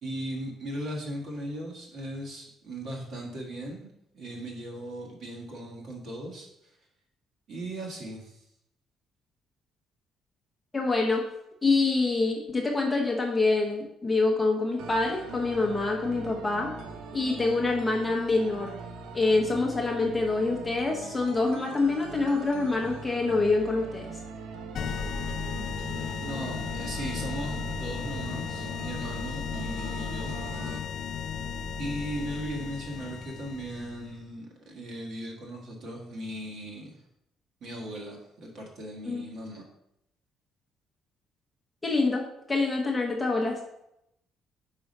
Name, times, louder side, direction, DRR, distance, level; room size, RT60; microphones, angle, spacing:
voice 1, 0.0-3.9 4.1-6.5 7.5-8.4 26.2-30.3 31.8-36.9 37.6-39.6, right 1 dB, 50° right, -1 dB, 1.5 m, -37 dB
voice 2, 10.7-11.2 11.6-16.7 17.1-18.7 19.1-24.1 39.0-39.2 41.8-43.6, left 3 dB, 15° left, -1 dB, 0.8 m, -26 dB
sound 1, 14.8-30.8, right 4 dB, 70° right, 0.6 m, -42 dB
sound 2, 24.7-34.2, left 6 dB, 50° left, 0.3 m, -35 dB
4.9 x 4.7 x 5.3 m, 0.81 s
cardioid pair, 170°, 0 cm